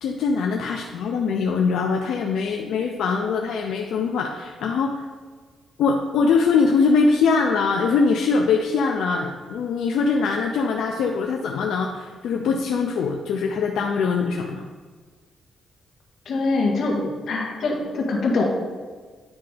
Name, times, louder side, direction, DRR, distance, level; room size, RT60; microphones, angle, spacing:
voice 1, 0.0-5.0 5.8-14.7, left 4 dB, 85° left, 2 dB, 0.5 m, -22 dB
voice 2, 16.2-18.4, left 3 dB, 60° left, -1 dB, 1.5 m, -24 dB
9.7 x 3.4 x 5.1 m, 1.5 s
cardioid pair, 140°, 0 cm